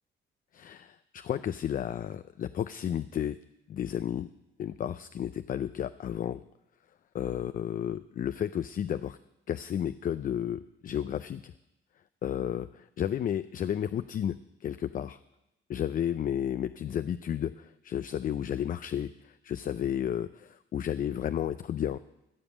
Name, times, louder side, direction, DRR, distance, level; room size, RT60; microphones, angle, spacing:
voice 1, 0.5-3.4 3.7-4.3 4.6-6.4 7.1-9.2 9.5-11.5 12.2-15.2 15.7-22.0, left 9 dB, 45° left, 13 dB, 0.4 m, -32 dB
14.0 x 5.3 x 8.5 m, 0.92 s
cardioid pair, 90°, 20 cm